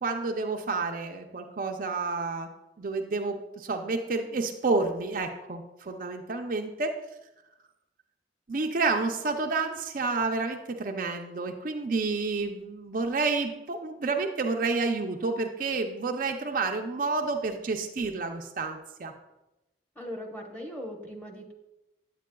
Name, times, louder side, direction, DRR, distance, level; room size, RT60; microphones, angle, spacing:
voice 1, 0.0-2.5 2.8-7.0 8.5-19.1, right 3 dB, 50° right, 4 dB, 0.5 m, -30 dB
voice 2, 20.0-21.5, equal, 10° left, 0 dB, 1.0 m, -39 dB
8.8 x 8.3 x 2.3 m, 0.96 s
head